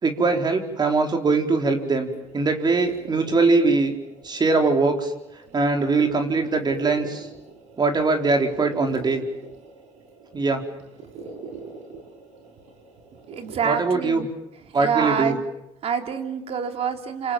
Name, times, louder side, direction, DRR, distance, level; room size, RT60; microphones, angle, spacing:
voice 1, 0.0-2.1 2.3-3.9 4.2-5.1 5.5-7.3 7.8-9.2 10.3-10.6 13.6-14.2 14.7-15.3, right 3 dB, 35° right, 4 dB, 4.4 m, -21 dB
sound 1, 2.0-14.2, right 4 dB, 70° right, 5.8 m, -44 dB
voice 2, 13.3-14.3 14.6-15.4 15.8-17.3, right 7 dB, 55° right, 6 dB, 3.3 m, -26 dB
27.5 x 27.0 x 7.5 m, 0.87 s
supercardioid pair, 70°, 13 cm